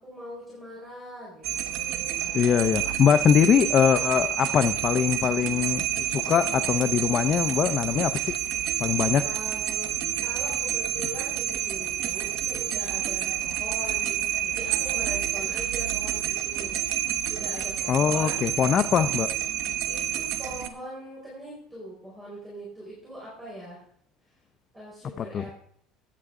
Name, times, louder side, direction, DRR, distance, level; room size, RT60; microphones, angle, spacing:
voice 1, 0.0-2.6 9.2-9.9 10.2-16.8 17.3-18.5 19.9-23.8 24.7-25.6, equal, 5° right, -6 dB, 4.3 m, -41 dB
sound 1, 1.4-20.7, right 11 dB, 60° right, 1.1 m, -29 dB
voice 2, 2.3-8.3 8.8-9.2 17.9-19.3 25.2-25.4, left 8 dB, 30° left, 9 dB, 0.5 m, -22 dB
16.0 x 9.1 x 3.7 m, 0.62 s
cardioid pair, 170°, 0 cm